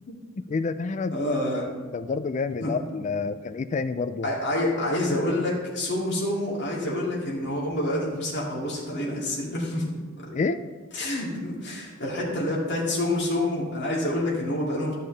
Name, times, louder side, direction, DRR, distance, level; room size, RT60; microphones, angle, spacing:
voice 1, 0.5-1.2 1.9-4.3 10.3-10.6, left 4 dB, 35° left, 12 dB, 0.3 m, -28 dB
voice 2, 1.1-1.7 2.6-2.8 4.2-9.9 10.2-10.3 10.9-14.9, left 1 dB, 60° left, -4 dB, 2.4 m, -27 dB
12.0 x 6.6 x 3.3 m, 1.4 s
head